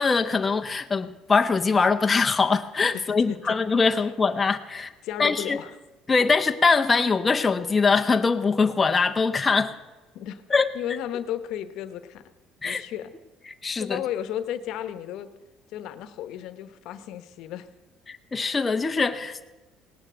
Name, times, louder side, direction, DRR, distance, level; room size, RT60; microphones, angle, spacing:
voice 1, 0.0-4.9 5.2-5.6 6.1-9.7 10.5-10.7 12.6-12.8 13.5-14.0 18.1-19.5, left 4 dB, 20° left, 6 dB, 0.7 m, -22 dB
voice 2, 2.9-3.6 3.9-4.0 5.0-5.7 10.1-10.4 10.7-12.2 12.6-13.1 13.8-15.3 15.7-17.7, left 11 dB, 75° left, 12 dB, 1.0 m, -34 dB
18.0 x 9.3 x 7.7 m, 1.2 s
cardioid pair, 115°, 0 cm